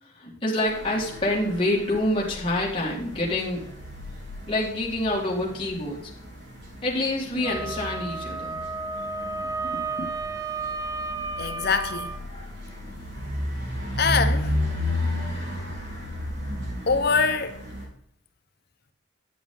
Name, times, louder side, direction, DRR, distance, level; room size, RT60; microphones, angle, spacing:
voice 1, 0.0-3.6 4.5-6.0 6.8-8.6 9.7-10.1, left 1 dB, 25° left, 2.1 m, -27 dB
sound 1, 0.7-17.9, left 1 dB, 55° right, 4.4 m, -33 dB
Wind instrument woodwind instrument, 7.4-12.2, right 3 dB, 15° right, 0.4 m, -32 dB
voice 2, 11.4-12.2 14.0-14.6 16.9-17.6, left 5 dB, 50° left, 0.9 m, -24 dB
10.0 x 7.4 x 3.8 m
head